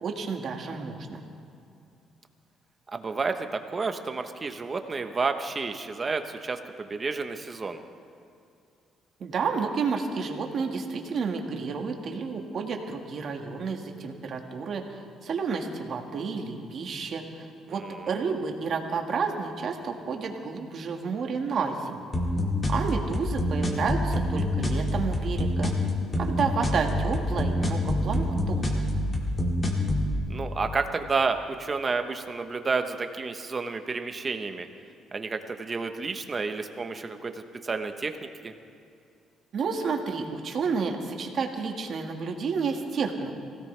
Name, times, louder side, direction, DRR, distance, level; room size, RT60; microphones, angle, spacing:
voice 1, 0.0-1.2 9.2-22.1 22.7-25.7 26.2-28.8 39.5-43.3, right 5 dB, 50° right, 2 dB, 1.8 m, -31 dB
voice 2, 2.9-7.8 17.7-18.0 30.3-34.7 35.1-38.5, right 4 dB, 25° right, 7 dB, 1.0 m, -31 dB
sound 1, 22.1-30.1, left 1 dB, 30° left, 2.2 m, -26 dB
24.0 x 17.0 x 3.4 m, 2.6 s
cardioid pair, 130°, 0 cm